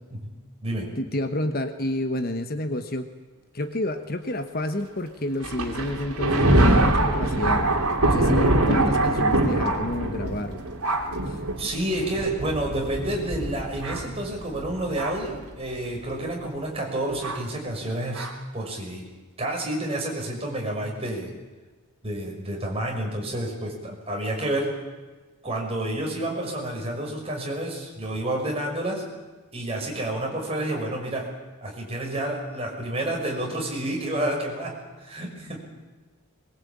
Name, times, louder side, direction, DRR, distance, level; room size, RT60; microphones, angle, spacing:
voice 1, 1.0-3.1 3.5-7.7 8.0-10.6 11.3-11.4, left 1 dB, 40° left, 7 dB, 1.3 m, -29 dB
Thunder, 5.4-15.3 16.1-16.2 17.2-17.4 18.1-18.3, right 1 dB, 75° right, 3.2 m, -24 dB
voice 2, 11.5-18.3 18.5-19.1 19.4-21.3 22.0-24.7 25.4-29.0 29.5-31.3 31.6-34.7 35.0-35.6, right 1 dB, 25° right, -1 dB, 6.1 m, -29 dB
22.0 x 22.0 x 8.7 m, 1.3 s
head